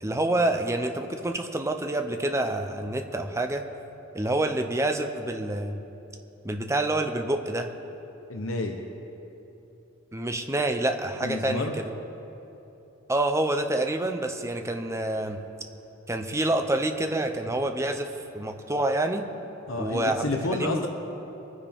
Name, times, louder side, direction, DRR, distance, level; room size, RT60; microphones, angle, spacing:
voice 1, 0.0-3.7 4.1-5.8 6.4-7.7 10.1-11.9 13.1-15.4 16.1-18.1 18.3-19.2 19.8-20.9, right 1 dB, 15° right, 6 dB, 0.7 m, -27 dB
voice 2, 8.3-8.8 11.2-11.8 19.7-20.9, left 2 dB, 70° left, 2 dB, 1.0 m, -30 dB
23.5 x 9.9 x 3.6 m, 3.0 s
head